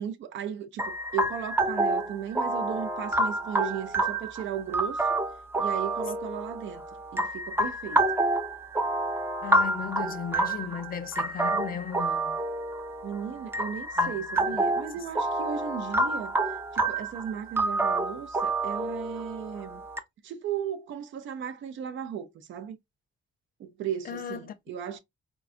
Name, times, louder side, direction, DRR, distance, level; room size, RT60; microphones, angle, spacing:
voice 1, 0.0-5.1 5.6-6.8 7.1-8.0 13.0-16.4 16.7-19.8 20.2-22.8 23.6-25.0, right 9 dB, 75° right, 0.6 m, -36 dB
sound 1, 0.8-20.0, right 2 dB, 10° right, 0.5 m, -28 dB
voice 2, 9.4-12.4 14.0-14.2 14.9-15.0 24.0-24.5, left 8 dB, 45° left, 0.5 m, -36 dB
3.8 x 2.3 x 2.5 m
cardioid pair, 90°, 20 cm